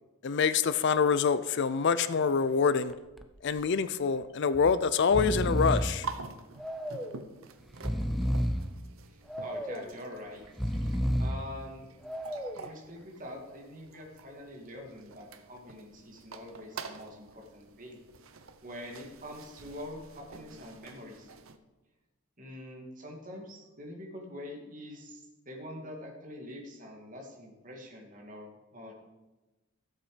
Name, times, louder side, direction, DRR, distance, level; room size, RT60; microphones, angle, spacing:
voice 1, 0.2-2.9 3.4-6.1, left 5 dB, 55° left, 14 dB, 0.4 m, -26 dB
Breathing, 2.9-3.2 3.6-3.7 4.5-4.7 5.0-6.0 6.6-7.2 7.7-8.7 9.3-9.9 10.4-11.5 12.0-12.7, equal, ahead, 0.5 m, -31 dB
sound 1, 5.8-21.6, right 4 dB, 70° right, 0.8 m, -48 dB
voice 2, 9.1-10.4 11.2-11.9 12.5-18.0 18.3-21.3 22.4-28.9, left 1 dB, 35° right, 1 dB, 2.3 m, -45 dB
14.0 x 8.1 x 5.0 m, 1.1 s
head